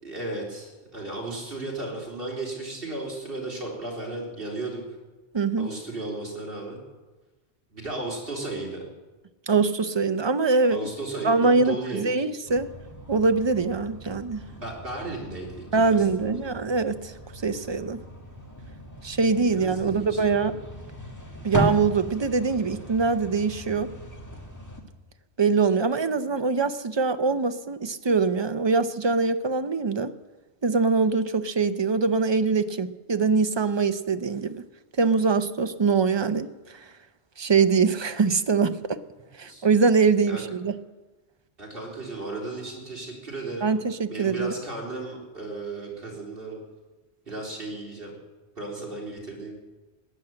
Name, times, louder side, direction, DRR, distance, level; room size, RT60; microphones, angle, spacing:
voice 1, 0.0-4.8 5.6-6.8 7.7-8.8 10.7-12.1 14.5-16.4 19.5-20.2 39.5-39.6 40.3-40.4 41.6-43.7 44.1-46.6 47.3-48.1 48.6-49.6, right 2 dB, 55° right, -2 dB, 4.1 m, -35 dB
voice 2, 5.3-5.8 9.5-10.9 11.2-12.7 13.1-14.4 15.7-17.1 17.4-18.0 19.0-20.6 21.4-23.9 25.4-30.1 30.6-34.6 35.0-36.5 37.4-39.0 39.4-40.7 43.6-44.5, right 4 dB, 30° right, 10 dB, 0.5 m, -23 dB
sound 1, 12.5-24.8, equal, 15° left, 1.7 m, -37 dB
16.5 x 10.0 x 7.6 m, 1.2 s
omnidirectional pair, 1.2 m